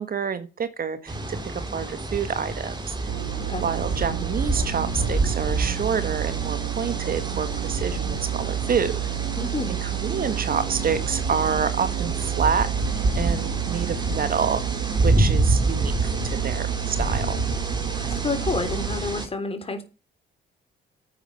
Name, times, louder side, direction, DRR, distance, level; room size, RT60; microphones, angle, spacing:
voice 1, 0.0-3.1 3.6-9.0 9.7-17.4, right 6 dB, 45° right, 1.5 m, -28 dB
sound 1, 1.1-19.3, right 2 dB, 20° right, 3.2 m, -28 dB
sound 2, 3.1-19.0, right 16 dB, 70° right, 1.5 m, -30 dB
voice 2, 9.4-9.7 18.0-19.8, left 3 dB, 30° left, 3.5 m, -29 dB
10.0 x 8.5 x 5.8 m
cardioid pair, 90°, 20 cm